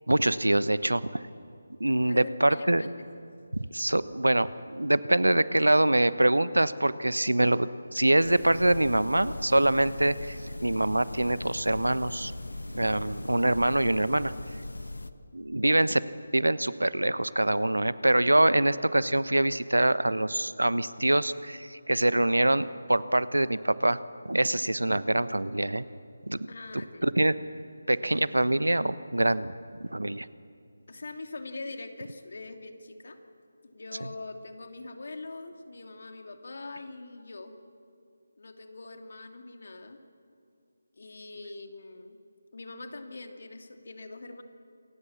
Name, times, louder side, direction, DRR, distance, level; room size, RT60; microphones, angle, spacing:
voice 1, 0.1-1.2 1.8-2.8 3.5-12.3 12.7-14.3 15.3-16.0 16.3-24.0 24.2-25.8 26.3-26.5 27.0-27.4 27.9-29.5 29.8-30.3, right 1 dB, 80° right, 15 dB, 1.1 m, -24 dB
voice 2, 2.0-3.1 26.5-27.1 30.9-33.2 33.6-37.5 38.4-40.0 41.0-42.2 42.5-44.4, left 3 dB, 55° left, 5 dB, 2.8 m, -43 dB
sound 1, 8.2-15.1, left 2 dB, 75° left, 1.4 m, -39 dB
28.0 x 24.0 x 7.4 m, 2.4 s
figure-of-eight pair, 155°, 0 cm